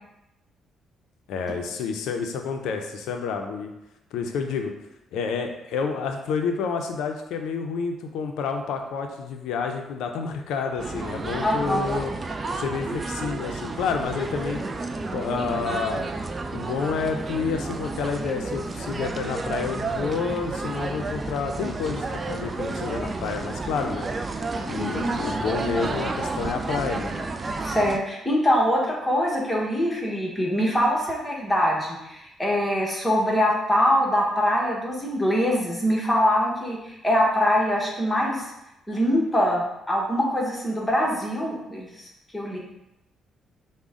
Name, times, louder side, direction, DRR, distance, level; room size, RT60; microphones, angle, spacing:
voice 1, 1.3-3.7 4.1-4.7 5.1-12.1 12.6-14.6 15.1-16.1 16.5-24.1 24.7-27.1, left 5 dB, 85° left, 4 dB, 0.5 m, -29 dB
sound 1, 10.8-28.0, right 3 dB, 30° right, 0.3 m, -31 dB
voice 2, 11.4-11.8 24.8-25.1 27.6-38.5 38.9-42.1 42.3-42.6, equal, 10° left, -3 dB, 1.0 m, -23 dB
5.0 x 2.1 x 3.6 m, 0.90 s
cardioid pair, 90°, 0 cm